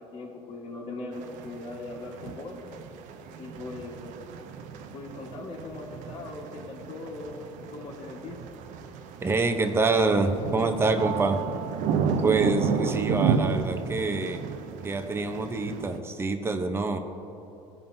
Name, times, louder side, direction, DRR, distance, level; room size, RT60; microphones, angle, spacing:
voice 1, 0.0-2.6 3.4-4.1 4.9-8.4, left 2 dB, 50° left, -5 dB, 1.4 m, -40 dB
sound 1, 1.1-16.0, right 6 dB, 65° right, 0.6 m, -32 dB
voice 2, 9.2-11.4 12.2-14.5 14.8-17.0, right 3 dB, 20° right, 6 dB, 0.7 m, -26 dB
16.0 x 5.4 x 2.7 m, 3.0 s
supercardioid pair, 110°, 14 cm